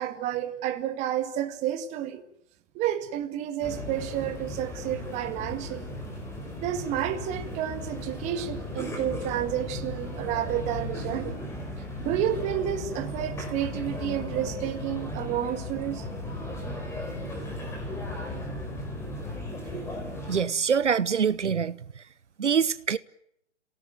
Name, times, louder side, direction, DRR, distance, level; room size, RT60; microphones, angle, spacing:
voice 1, 0.0-2.2 2.7-5.9 6.6-11.4 12.0-16.1, right 11 dB, 20° right, 2.0 m, -30 dB
sound 1, 3.6-20.4, left 1 dB, 5° left, 5.0 m, -36 dB
voice 2, 20.3-21.8 22.4-23.0, right 7 dB, 80° right, 1.1 m, -24 dB
29.5 x 18.0 x 9.1 m
hypercardioid pair, 140°, 35 cm